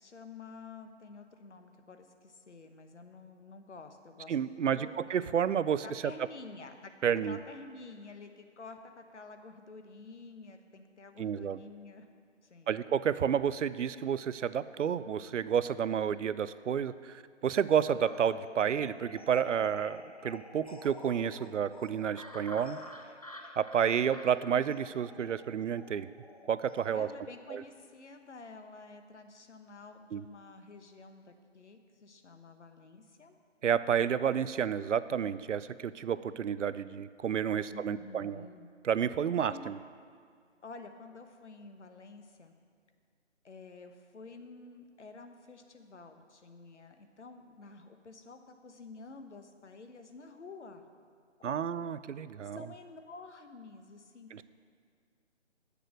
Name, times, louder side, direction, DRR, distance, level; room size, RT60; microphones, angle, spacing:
voice 1, 0.0-4.4 4.6-5.0 5.8-6.9 7.2-12.1 12.4-12.7 26.9-33.4 37.7-38.7 39.5-39.7 40.6-42.5 43.4-50.9 51.4-51.9 52.5-54.4, left 3 dB, 70° left, 7 dB, 1.0 m, -50 dB
voice 2, 4.3-6.0 7.0-7.4 11.2-11.6 12.7-22.8 23.6-26.1 26.5-27.1 27.5-27.6 30.1-30.2 33.6-38.4 38.8-39.8 51.4-52.7 54.3-54.4, right 8 dB, 75° right, 15 dB, 0.5 m, -30 dB
sound 1, 18.0-27.2, left 1 dB, 30° left, 0.4 m, -49 dB
8.4 x 6.7 x 6.4 m, 2.1 s
figure-of-eight pair, 155°, 37 cm